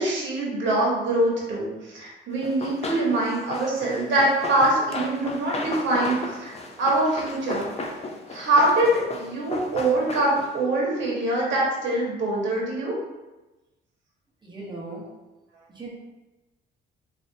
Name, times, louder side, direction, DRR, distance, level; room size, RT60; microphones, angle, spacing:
voice 1, 0.0-7.7 8.3-12.9, right 1 dB, 70° right, -4 dB, 1.4 m, -24 dB
Run, 2.4-10.6, left 2 dB, 30° left, 0.5 m, -34 dB
voice 2, 14.4-15.0 15.7-15.9, right 2 dB, 25° right, -4 dB, 1.3 m, -37 dB
4.0 x 3.0 x 2.7 m, 1.1 s
cardioid pair, 90°, 20 cm